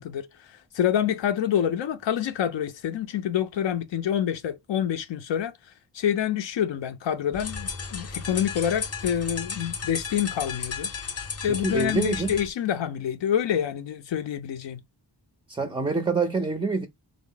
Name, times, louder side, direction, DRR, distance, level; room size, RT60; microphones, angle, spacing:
voice 1, 0.0-5.5 5.9-10.9 11.4-14.8, left 9 dB, 80° left, 0.5 m, -27 dB
sound 1, 7.3-12.5, left 5 dB, 35° left, 0.6 m, -34 dB
voice 2, 11.5-12.3 15.5-16.9, right 4 dB, 15° right, 0.3 m, -26 dB
3.5 x 2.0 x 3.7 m
wide cardioid pair, 85°, 44 cm